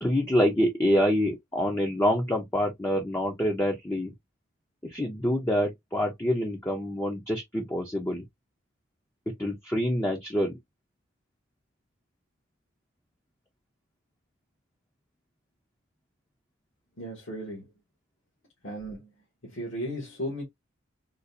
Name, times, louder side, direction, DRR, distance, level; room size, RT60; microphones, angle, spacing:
voice 1, 0.0-4.1 4.8-8.2 9.3-10.6, equal, 10° left, 0.6 m, -26 dB
voice 2, 17.0-17.7 18.6-19.1 19.4-20.4, equal, 70° left, 1.5 m, -35 dB
3.9 x 2.4 x 2.6 m
head